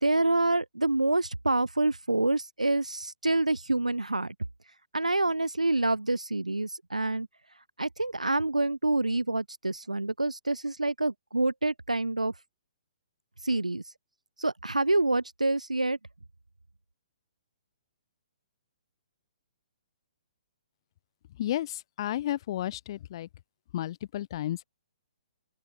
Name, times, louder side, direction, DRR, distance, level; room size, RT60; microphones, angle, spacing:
voice 1, 0.0-4.3 4.9-7.3 7.8-12.3 13.4-13.8 14.4-16.0, right 2 dB, 90° right, 1.8 m, -27 dB
voice 2, 21.4-23.3 23.7-24.6, left 13 dB, 45° left, 1.8 m, -32 dB
open air
figure-of-eight pair, 125°, 4 cm